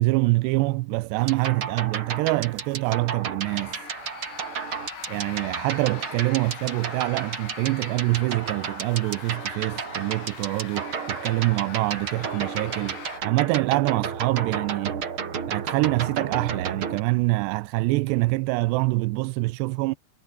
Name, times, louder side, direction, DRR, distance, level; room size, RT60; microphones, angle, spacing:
voice 1, 0.0-3.8 5.1-15.0 15.5-20.0, right 22 dB, 80° right, 2.5 m, -25 dB
sound 1, 1.2-17.0, right 6 dB, 40° right, 2.0 m, -33 dB
sound 2, 3.4-13.2, left 9 dB, 80° left, 5.8 m, -42 dB
omnidirectional pair, 5.4 m